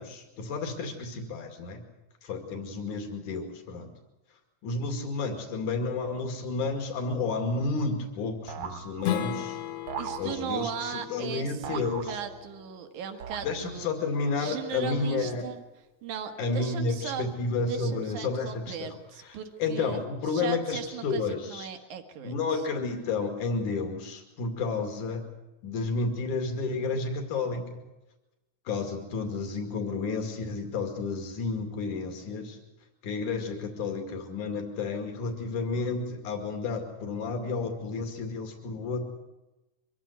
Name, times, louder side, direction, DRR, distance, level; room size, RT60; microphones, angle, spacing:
voice 1, 0.0-1.8 2.2-3.9 4.6-9.6 10.2-12.2 13.4-15.5 16.4-19.0 19.3-21.7 22.2-25.2 25.6-27.8 28.7-32.6 33.0-39.0, left 4 dB, 85° left, 4 dB, 3.8 m, -31 dB
sound 1, 8.5-9.4 9.9-10.8 11.6-12.7 13.2-13.9, right 8 dB, 60° right, 1.9 m, -40 dB
Strum, 9.0-14.2, left 10 dB, 70° left, 2.1 m, -37 dB
voice 2, 10.0-13.9 14.4-15.6 16.0-17.3 17.7-22.6 27.5-27.6, right 8 dB, 85° right, 6 dB, 3.0 m, -38 dB
24.0 x 15.5 x 9.4 m, 1.0 s
omnidirectional pair, 3.4 m